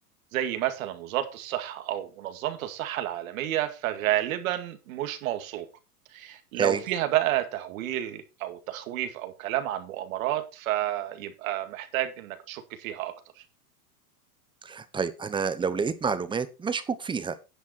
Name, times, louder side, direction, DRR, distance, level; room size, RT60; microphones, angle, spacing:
voice 1, 0.3-5.7 6.1-13.1, right 13 dB, 65° right, 2.1 m, -30 dB
voice 2, 14.6-17.4, right 5 dB, 10° right, 0.8 m, -29 dB
10.0 x 7.5 x 4.3 m
supercardioid pair, 130°, 44 cm